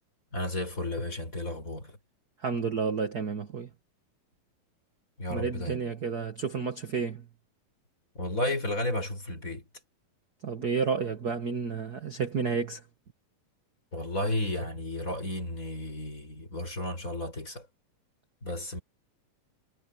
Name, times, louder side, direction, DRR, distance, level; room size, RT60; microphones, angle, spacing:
voice 1, 0.3-2.0 5.2-5.8 8.1-9.6 13.9-17.7 18.4-18.8, left 1 dB, 20° left, 6.1 m, -33 dB
voice 2, 2.4-3.7 5.3-7.2 10.4-12.8, right 5 dB, 45° right, 1.3 m, -31 dB
omnidirectional pair, 3.9 m